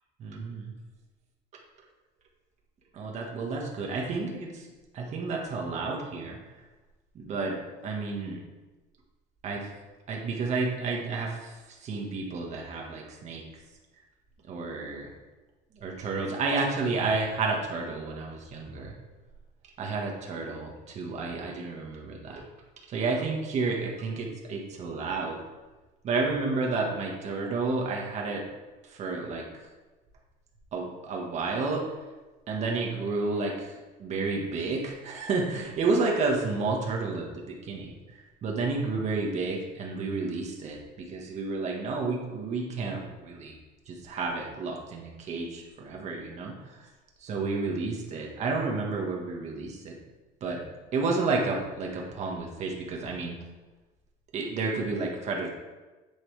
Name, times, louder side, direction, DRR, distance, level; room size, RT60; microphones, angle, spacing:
voice 1, 0.2-0.7 2.9-4.7 4.9-6.4 7.2-7.6 7.8-8.4 9.4-9.7 10.1-13.5 14.5-15.1 15.7-18.9 19.8-22.4 22.9-25.4 26.0-28.4 28.8-29.4 30.7-31.8 32.5-33.7 34.0-43.6 43.9-46.8 47.2-49.9 50.4-50.6 50.9-53.3 54.3-55.5, right 3 dB, 40° right, -1 dB, 1.7 m, -31 dB
8.9 x 8.1 x 3.5 m, 1.2 s
cardioid pair, 170°, 19 cm